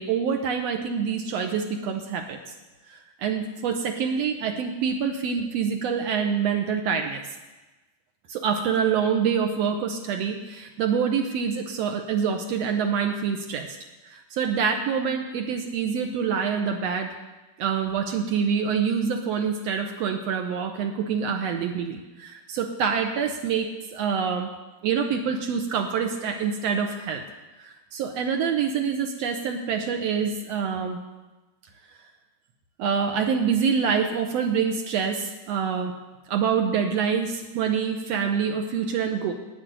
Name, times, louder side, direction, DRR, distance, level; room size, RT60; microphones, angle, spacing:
voice 1, 0.0-2.4 2.9-7.2 8.3-13.7 14.0-17.1 17.6-24.5 24.8-27.2 27.6-31.0 32.8-35.9 36.3-39.3, right 6 dB, 75° right, 4 dB, 1.6 m, -26 dB
8.9 x 8.5 x 9.1 m, 1.1 s
omnidirectional pair, 3.8 m